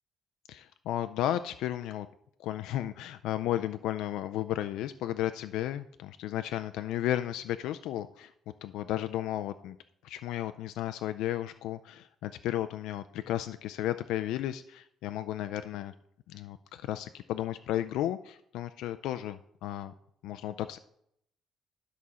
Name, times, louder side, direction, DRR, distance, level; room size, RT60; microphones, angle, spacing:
voice 1, 0.5-2.1 2.4-8.3 8.6-9.8 10.0-15.9 16.3-19.9 20.2-20.8, left 12 dB, 85° left, 11 dB, 0.3 m, -34 dB
11.0 x 4.1 x 6.2 m, 0.72 s
cardioid pair, 145°, 0 cm